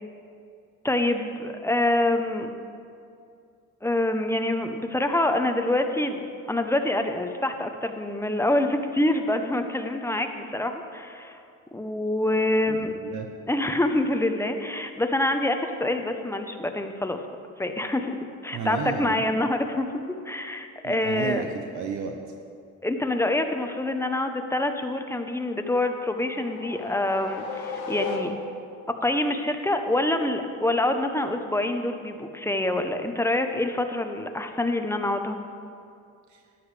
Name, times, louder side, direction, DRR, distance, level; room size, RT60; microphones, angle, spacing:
voice 1, 0.8-2.5 3.8-11.4 11.7-12.9 13.5-17.2 17.6-18.2 18.4-19.9 20.3-21.4 22.8-28.3 29.0-35.4, left 1 dB, 10° left, 6 dB, 0.7 m, -26 dB
voice 2, 12.6-13.3 18.5-19.2 20.8-22.2 36.3-36.4, right 6 dB, 70° right, 4 dB, 0.8 m, -32 dB
sound 1, 25.5-28.8, left 4 dB, 85° left, 1.1 m, -35 dB
12.5 x 10.0 x 3.3 m, 2.4 s
cardioid pair, 90°, 30 cm